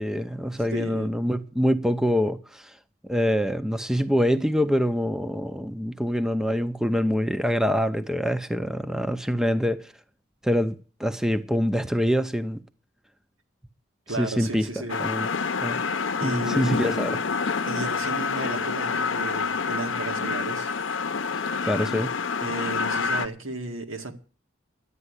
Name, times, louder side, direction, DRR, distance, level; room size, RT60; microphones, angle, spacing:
voice 1, 0.0-2.8 3.0-9.9 10.4-12.6 14.1-15.3 15.6-15.8 16.2-17.2 21.3-22.1, equal, 5° right, 0.5 m, -25 dB
voice 2, 0.7-1.2 14.1-15.1 16.2-17.0 17.7-20.7 22.4-24.1, right 2 dB, 85° right, 2.0 m, -34 dB
sound 1, 14.9-23.3, left 5 dB, 70° left, 0.7 m, -27 dB
11.0 x 8.8 x 8.1 m
head